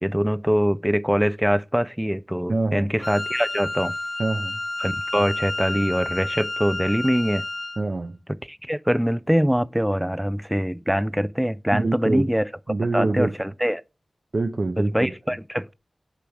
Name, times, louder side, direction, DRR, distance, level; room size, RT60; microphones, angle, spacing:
voice 1, 0.0-4.0 4.8-7.4 8.5-12.5 12.9-13.8 14.8-15.7, equal, 5° right, 0.4 m, -23 dB
voice 2, 2.5-2.9 4.2-4.6 7.8-8.2 11.7-12.3 12.7-13.5 14.3-15.1, right 3 dB, 55° right, 0.7 m, -25 dB
Wind instrument woodwind instrument, 3.0-7.9, left 2 dB, 40° left, 0.7 m, -30 dB
6.8 x 5.0 x 6.0 m
cardioid pair, 50°, 0 cm